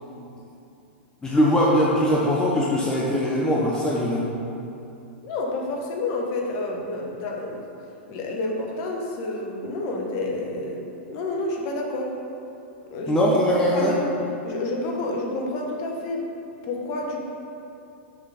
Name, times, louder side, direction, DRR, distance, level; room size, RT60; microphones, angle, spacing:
voice 1, 1.2-4.2 13.1-13.9, equal, 10° left, -5 dB, 0.8 m, -21 dB
voice 2, 5.2-7.6 8.1-12.1 12.9-13.1 13.7-14.1 14.4-16.3 16.6-17.2, left 2 dB, 45° left, 0 dB, 1.1 m, -29 dB
6.3 x 3.8 x 5.0 m, 2.7 s
hypercardioid pair, 110°, 6 cm